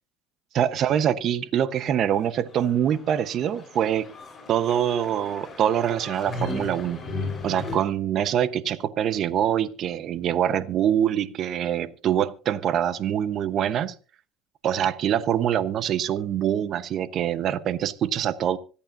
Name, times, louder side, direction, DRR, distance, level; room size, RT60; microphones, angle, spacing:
voice 1, 0.5-4.1 4.5-7.0 7.4-13.9 14.6-18.6, right 10 dB, 50° right, 1.0 m, -24 dB
sound 1, 2.1-7.8, left 2 dB, 30° left, 7.1 m, -36 dB
25.5 x 8.7 x 2.7 m
supercardioid pair, 85°, 0 cm